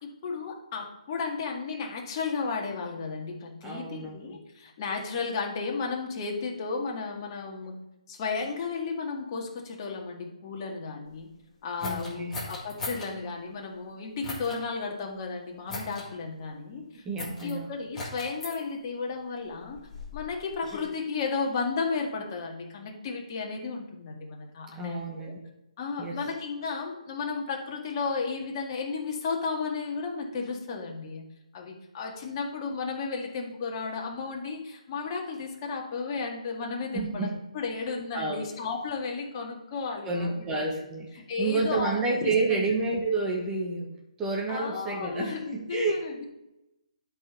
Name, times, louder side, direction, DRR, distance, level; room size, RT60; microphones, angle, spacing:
voice 1, 0.0-7.8 8.1-11.3 11.6-17.0 17.4-19.8 20.1-25.3 25.8-31.3 31.5-37.3 37.5-40.7 41.3-42.6 44.5-46.2, left 4 dB, 35° left, 0 dB, 1.9 m, -33 dB
voice 2, 3.6-4.4 11.8-12.3 17.0-17.7 24.7-25.4 26.0-26.2 36.9-37.3 37.7-37.8 38.1-38.6 40.0-43.9 44.2-45.9, right 3 dB, 15° right, -1 dB, 1.2 m, -30 dB
sound 1, 11.8-13.1 14.2-14.6 15.7-16.1 17.2-17.5 17.9-18.6 19.5-20.9, left 2 dB, 10° left, 2.4 m, -38 dB
12.0 x 5.3 x 4.0 m, 0.92 s
figure-of-eight pair, 140°, 4 cm